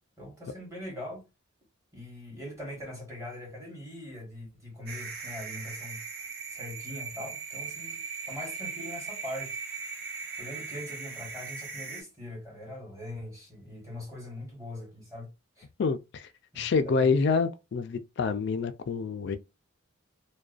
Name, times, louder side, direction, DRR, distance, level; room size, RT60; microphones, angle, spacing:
voice 1, 0.2-1.3 1.9-6.0 6.5-9.6 10.4-15.3 15.6-15.7 16.5-17.2, left 1 dB, 15° right, 1.1 m, -42 dB
sound 1, 4.9-12.0, right 5 dB, 45° right, 0.6 m, -39 dB
voice 2, 15.8-16.3 16.6-19.4, left 5 dB, 55° left, 0.3 m, -27 dB
2.4 x 2.2 x 2.4 m
head